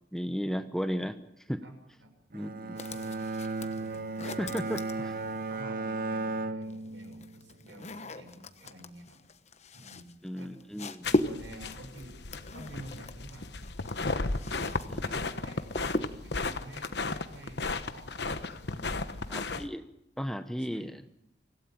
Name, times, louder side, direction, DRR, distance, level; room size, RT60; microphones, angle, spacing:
voice 1, 0.1-1.2 1.5-1.6 2.3-2.8 4.2-4.9 10.2-11.1 14.9-15.1 19.3-19.8 20.2-21.1, equal, 5° left, 9 dB, 0.9 m, -34 dB
voice 2, 1.6-2.1 2.5-3.3 3.7-4.0 4.8-9.2 9.7-12.1 12.5-13.6 14.7-19.4 20.6-21.1, right 1 dB, 80° right, 6 dB, 6.3 m, -50 dB
Bowed string instrument, 2.3-7.6, right 3 dB, 50° right, 1.0 m, -35 dB
sound 1, 2.8-5.6 6.6-14.9 15.1-16.4, left 1 dB, 35° left, 1.1 m, -37 dB
sound 2, 11.0-19.7, left 3 dB, 60° left, 1.2 m, -35 dB
25.0 x 16.5 x 9.0 m, 0.81 s
head